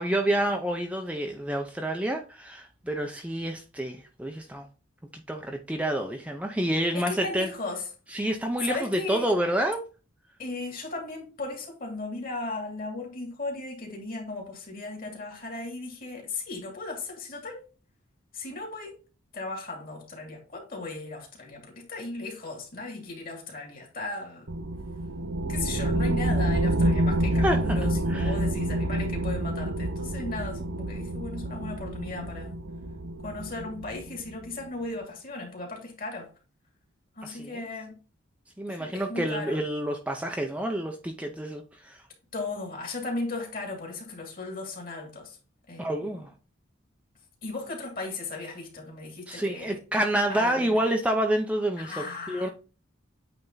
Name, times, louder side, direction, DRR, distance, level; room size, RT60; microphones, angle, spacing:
voice 1, 0.0-4.7 5.1-7.5 8.1-9.8 27.4-27.8 28.1-28.3 37.2-37.6 38.6-42.0 45.8-46.3 49.3-52.5, right 1 dB, 5° right, 0.6 m, -28 dB
voice 2, 6.9-7.9 8.6-9.3 10.4-17.6 18.3-19.0 19.3-24.5 25.5-32.5 33.2-36.3 37.2-37.9 38.7-39.6 42.3-45.4 45.7-46.2 47.4-49.8 50.3-50.8 51.8-52.5, left 3 dB, 45° left, 2.7 m, -36 dB
sound 1, 24.5-34.5, right 1 dB, 70° right, 0.9 m, -28 dB
8.8 x 3.5 x 3.9 m
head